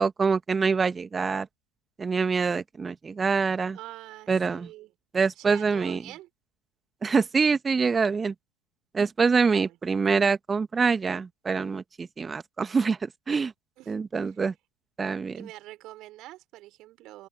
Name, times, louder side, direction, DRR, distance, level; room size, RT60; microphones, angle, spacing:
voice 1, 0.0-1.5 2.0-3.8 4.3-4.7 5.1-6.0 7.0-8.3 8.9-13.5 13.9-14.5 15.0-15.5, right 5 dB, 20° right, 1.5 m, -25 dB
voice 2, 3.7-4.9 5.4-6.3 9.5-9.8 13.8-14.0 15.3-17.3, right 17 dB, 50° right, 4.6 m, -45 dB
open air
figure-of-eight pair, 80°, 0 cm